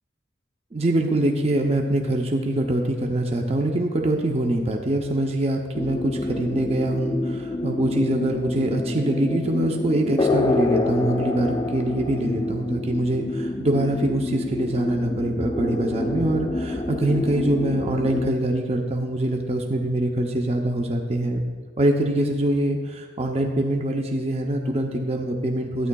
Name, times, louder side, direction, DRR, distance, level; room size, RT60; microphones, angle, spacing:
voice 1, 0.7-21.4 21.8-25.9, right 1 dB, 30° right, 2 dB, 0.6 m, -24 dB
sound 1, 5.7-18.3, left 2 dB, 20° left, 0.4 m, -27 dB
12.5 x 9.3 x 2.3 m, 1.5 s
head